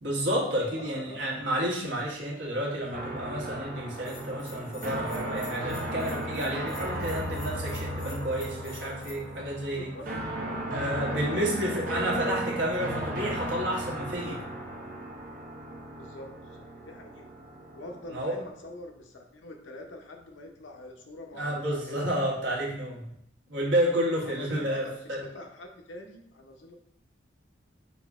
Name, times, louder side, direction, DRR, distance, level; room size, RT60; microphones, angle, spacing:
voice 1, 0.0-9.9 10.7-14.4 18.1-18.4 21.3-23.1 23.5-25.2, equal, 70° right, -3 dB, 1.3 m, -30 dB
voice 2, 0.8-1.4 9.8-11.9 12.3-12.5 12.9-13.0 15.9-17.3 17.7-22.2 24.2-24.9 25.3-26.8, left 2 dB, 85° left, 2 dB, 0.7 m, -45 dB
sound 1, 2.9-18.8, right 1 dB, 45° right, 0.7 m, -36 dB
Bell, 3.9-9.1, left 4 dB, 45° left, 1.2 m, -50 dB
4.0 x 2.8 x 3.6 m, 0.74 s
head